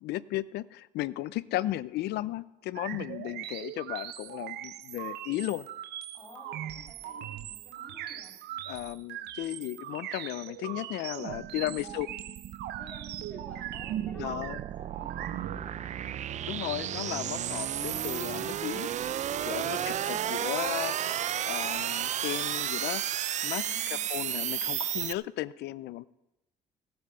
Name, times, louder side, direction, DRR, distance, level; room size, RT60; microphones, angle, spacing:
voice 1, 0.0-5.7 8.7-12.1 14.2-14.6 16.4-18.9 19.5-20.9 21.4-23.0 23.4-26.1, left 15 dB, 80° left, 18 dB, 0.6 m, -35 dB
sound 1, 2.7-15.6, right 12 dB, 75° right, 0.8 m, -40 dB
voice 2, 6.1-8.4 11.6-11.9 12.8-14.4 14.8-16.0 19.3-20.4 23.6-24.1, equal, 5° left, -2 dB, 7.0 m, -52 dB
sound 2, 11.2-25.1, right 10 dB, 45° right, 0.5 m, -33 dB
16.0 x 7.9 x 6.8 m, 0.89 s
cardioid pair, 110°, 17 cm